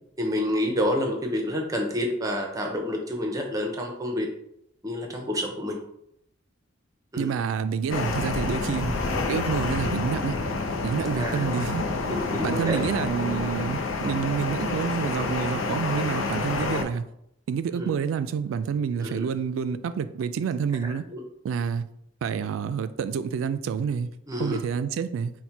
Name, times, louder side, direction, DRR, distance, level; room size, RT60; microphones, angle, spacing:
voice 1, 0.2-4.3 4.8-5.8 7.1-7.3 11.2-11.6 12.1-12.8 17.8-17.9 19.0-19.3 20.8-21.2 24.3-24.6, left 1 dB, 20° right, 0.6 m, -28 dB
voice 2, 7.2-8.9 9.3-10.4 10.8-11.8 12.4-17.0 17.5-21.0 21.4-21.9 22.2-24.1 24.4-25.3, right 6 dB, 90° right, 0.3 m, -28 dB
sound 1, 7.9-16.8, left 3 dB, 90° left, 0.5 m, -28 dB
4.2 x 2.1 x 4.5 m
head